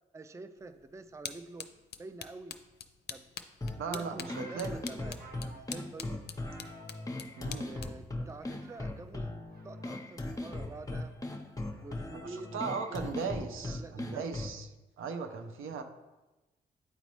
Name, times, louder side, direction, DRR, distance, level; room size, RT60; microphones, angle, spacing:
voice 1, 0.1-1.7 2.0-2.6 3.1-3.2 3.7-6.3 7.5-9.3 9.6-11.1 11.7-13.0 13.6-14.5, right 3 dB, 15° right, 11 dB, 0.4 m, -47 dB
sound 1, 0.6-9.3, left 7 dB, 50° left, 0.5 m, -47 dB
sound 2, 3.6-14.6, left 2 dB, 15° left, 0.8 m, -39 dB
voice 2, 3.8-4.8 7.4-7.7 12.1-14.7 15.0-15.8, right 5 dB, 75° right, 7 dB, 0.7 m, -37 dB
sound 3, 4.0-7.9 8.3-9.1 9.5-12.1 13.0-13.3, right 3 dB, 50° right, 0.9 m, -57 dB
9.1 x 4.0 x 3.1 m, 1.1 s
supercardioid pair, 45°, 21 cm